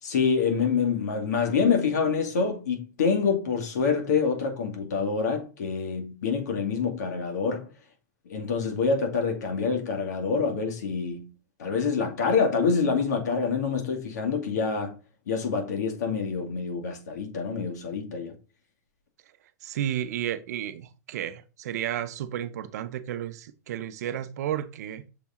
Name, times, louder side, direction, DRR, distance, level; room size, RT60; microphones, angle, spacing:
voice 1, 0.0-7.7 8.3-11.3 11.6-14.9 15.3-18.3, left 5 dB, 75° left, 2.3 m, -26 dB
voice 2, 19.6-25.0, right 11 dB, 70° right, 0.7 m, -32 dB
6.8 x 4.1 x 3.7 m
supercardioid pair, 150°, 9 cm